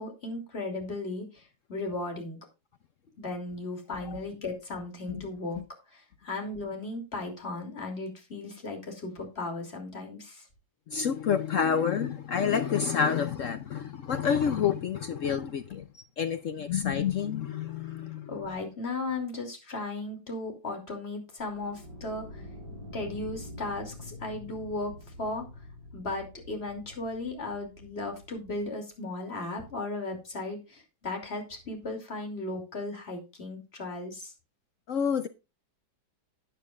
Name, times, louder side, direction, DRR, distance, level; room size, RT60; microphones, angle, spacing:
voice 1, 0.0-1.4 1.7-2.4 3.2-5.6 5.9-10.5 18.3-22.4 22.9-25.5 25.9-34.3, left 2 dB, 35° left, 3.0 m, -36 dB
voice 2, 10.9-15.9 16.2-18.3 34.9-35.3, left 7 dB, 60° left, 0.9 m, -28 dB
sound 1, 21.4-28.7, left 1 dB, 70° right, 4.9 m, -46 dB
13.0 x 9.1 x 2.4 m
omnidirectional pair, 1.9 m